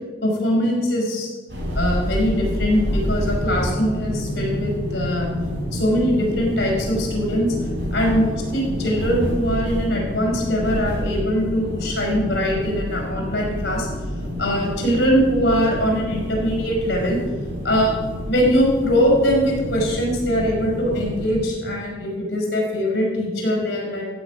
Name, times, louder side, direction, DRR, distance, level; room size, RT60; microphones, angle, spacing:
voice 1, 0.2-1.3 1.7-5.3 5.7-7.5 7.9-13.9 14.4-17.2 17.6-18.0 18.3-24.0, equal, 55° left, -2 dB, 4.9 m, -22 dB
sound 1, 1.5-21.3, equal, 60° right, 5.0 m, -28 dB
14.5 x 8.1 x 6.1 m, 1.5 s
head